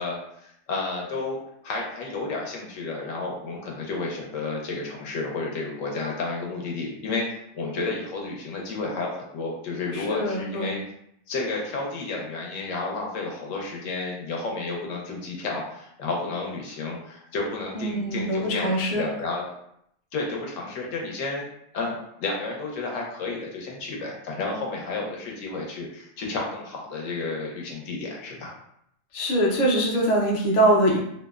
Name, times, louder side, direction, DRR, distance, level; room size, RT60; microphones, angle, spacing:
voice 1, 0.0-1.4 1.6-10.8 11.3-19.5 20.1-21.5 21.7-28.5, left 3 dB, 75° left, -1 dB, 0.9 m, -31 dB
voice 2, 9.9-10.7 17.7-19.0 29.1-31.0, right 1 dB, 50° left, -3 dB, 0.5 m, -23 dB
2.7 x 2.0 x 2.3 m, 0.74 s
omnidirectional pair, 1.4 m